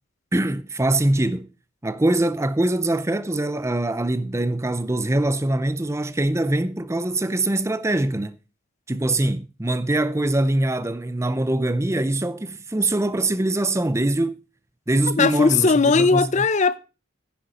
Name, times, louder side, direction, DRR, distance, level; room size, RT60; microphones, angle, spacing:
voice 1, 0.3-1.5 1.8-8.3 8.9-14.4 14.9-16.5, right 1 dB, 15° right, 0.6 m, -23 dB
voice 2, 15.2-16.8, left 4 dB, 35° left, 0.6 m, -18 dB
10.5 x 10.0 x 4.2 m
head